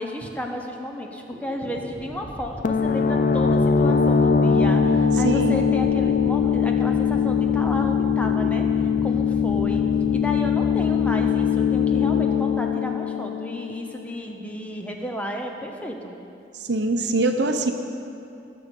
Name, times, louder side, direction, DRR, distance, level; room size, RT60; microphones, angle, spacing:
voice 1, 0.0-8.6 9.0-9.9 10.1-16.1, equal, 5° left, 2 dB, 0.9 m, -32 dB
sound 1, 1.3-11.8, equal, 25° right, 2.1 m, -39 dB
sound 2, 2.6-14.2, left 6 dB, 40° left, 0.4 m, -21 dB
voice 2, 5.2-5.7 16.7-17.7, right 2 dB, 60° right, 6 dB, 0.8 m, -23 dB
19.0 x 6.8 x 5.3 m, 2.7 s
head